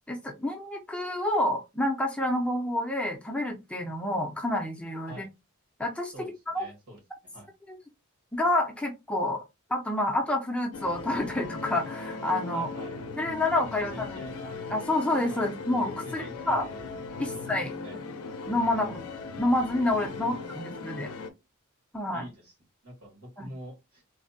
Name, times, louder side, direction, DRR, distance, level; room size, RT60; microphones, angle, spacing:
voice 1, 0.1-5.3 5.8-6.1 6.5-6.6 7.7-7.8 8.3-9.4 9.7-12.7 13.2-14.2 14.7-16.7 17.2-17.7 18.5-19.0 19.4-21.1 21.9-22.2 23.4-23.5, left 1 dB, 5° left, 2 dB, 0.4 m, -28 dB
voice 2, 6.5-7.0 7.3-7.5 12.5-12.9 13.6-14.5 15.3-15.5 16.0-16.8 17.3-17.4 17.8-18.0 18.7-18.9 20.3-20.7 22.1-22.5 22.8-24.0, equal, 85° right, 0 dB, 1.7 m, -45 dB
sound 1, 10.7-21.3, left 3 dB, 75° left, 0.5 m, -38 dB
3.3 x 2.1 x 2.6 m, 0.23 s
head